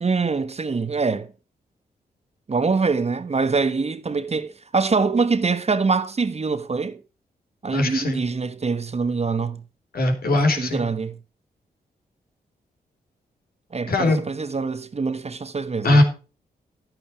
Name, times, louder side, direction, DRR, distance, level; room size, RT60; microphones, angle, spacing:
voice 1, 0.0-1.3 2.5-7.0 7.6-9.6 10.6-11.2 13.7-16.0, right 4 dB, 40° right, 1.2 m, -24 dB
voice 2, 7.7-8.2 9.9-10.8 13.9-14.2 15.8-16.0, left 2 dB, 65° left, 3.8 m, -20 dB
11.0 x 9.1 x 4.7 m
supercardioid pair, 50°, 17 cm